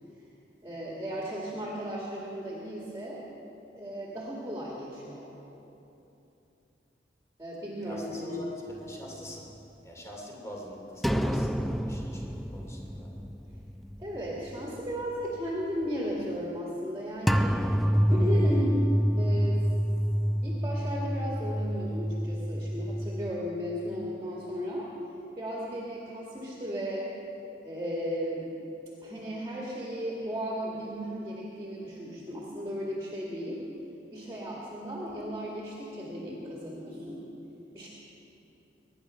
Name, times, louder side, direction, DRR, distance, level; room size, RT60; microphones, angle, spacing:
voice 1, 0.6-3.3 3.7-5.3 7.4-8.4 14.0-17.6 18.1-18.8 19.2-19.6 20.4-24.9 25.4-27.1 27.6-28.5 29.0-33.6 34.1-37.3 37.7-37.9, equal, 15° right, -5 dB, 2.0 m, -35 dB
voice 2, 7.8-9.5 9.8-13.2, equal, 15° left, -2 dB, 2.6 m, -44 dB
sound 1, 11.0-14.2 14.5-14.6 17.3-23.3, equal, ahead, 0.3 m, -27 dB
22.5 x 10.5 x 5.7 m, 3.0 s
head